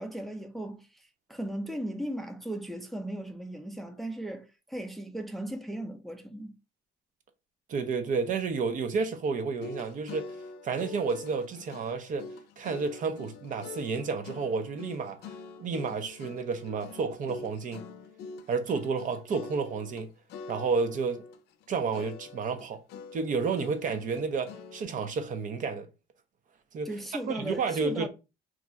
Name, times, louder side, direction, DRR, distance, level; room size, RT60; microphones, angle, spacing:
voice 1, 0.0-6.5 26.8-28.1, right 1 dB, ahead, 0.5 m, -37 dB
voice 2, 7.7-10.4 10.6-12.3 12.6-15.3 15.6-17.8 18.5-20.1 20.5-21.2 21.7-22.8 23.1-25.9 26.7-26.9 27.3-28.1, right 5 dB, 50° right, 0.6 m, -31 dB
sound 1, 9.5-20.0 20.3-21.7 21.9-24.8, left 5 dB, 75° left, 0.5 m, -45 dB
2.4 x 2.3 x 3.9 m
cardioid pair, 110°, 17 cm